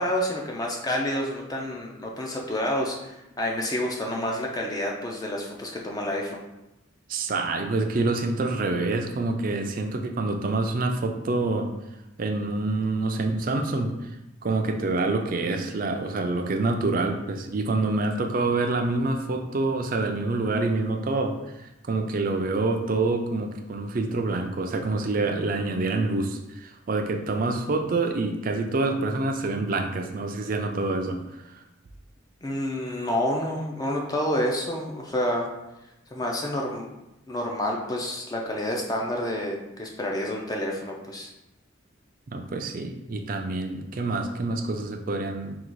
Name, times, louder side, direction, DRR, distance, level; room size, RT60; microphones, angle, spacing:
voice 1, 0.0-6.4 32.4-35.5 36.1-36.9 37.3-41.3, left 1 dB, 20° left, 0 dB, 0.4 m, -29 dB
voice 2, 7.1-11.7 12.2-14.1 14.4-31.4 42.3-45.5, right 3 dB, 45° right, 5 dB, 0.4 m, -27 dB
3.8 x 2.4 x 4.5 m, 0.95 s
head